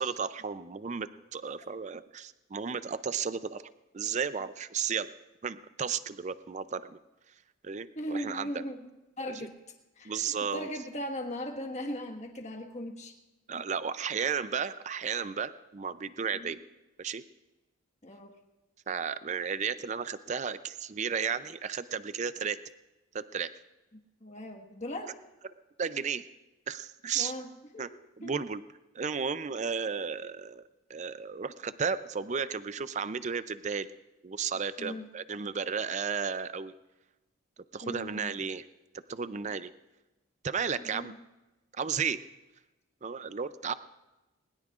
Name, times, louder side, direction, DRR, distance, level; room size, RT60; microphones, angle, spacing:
voice 1, 0.0-3.6 3.9-5.1 5.4-7.0 7.6-8.5 10.0-10.7 13.5-16.6 17.0-17.2 18.9-22.6 23.1-23.5 25.8-26.3 26.7-27.3 27.8-27.9 28.2-28.6 28.9-30.6 30.9-33.9 34.2-36.7 37.7-38.7 39.1-39.7 40.4-41.1 41.8-42.2 43.0-43.7, right 6 dB, 35° right, 13 dB, 0.4 m, -33 dB
voice 2, 7.9-9.6 10.0-13.1 16.3-16.5 18.0-18.4 23.9-25.1 27.1-28.3 34.8-35.1 37.8-38.4 40.8-41.2, left 1 dB, 35° left, 3 dB, 1.5 m, -39 dB
20.5 x 20.5 x 2.5 m, 1.0 s
head